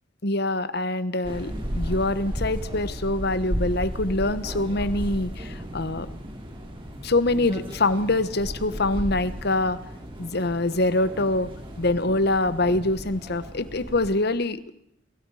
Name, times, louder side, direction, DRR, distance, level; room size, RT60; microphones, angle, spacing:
voice 1, 0.2-6.1 7.0-9.8 10.2-11.5 11.8-14.6, left 2 dB, 55° left, 14 dB, 1.2 m, -24 dB
sound 1, 1.2-14.1, equal, 25° right, 4.5 m, -34 dB
27.5 x 23.0 x 4.9 m, 0.76 s
head